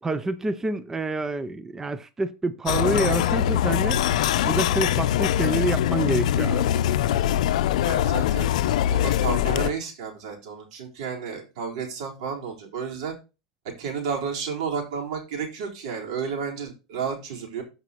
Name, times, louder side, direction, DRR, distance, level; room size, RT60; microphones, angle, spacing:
voice 1, 0.0-4.0 4.4-6.7, right 2 dB, 10° right, 0.5 m, -27 dB
sound 1, 2.7-9.7, left 11 dB, 80° left, 0.5 m, -23 dB
voice 2, 7.8-8.5 8.9-13.1 13.8-17.6, right 6 dB, 75° right, 3.9 m, -32 dB
14.5 x 5.3 x 2.9 m
supercardioid pair, 135°, 4 cm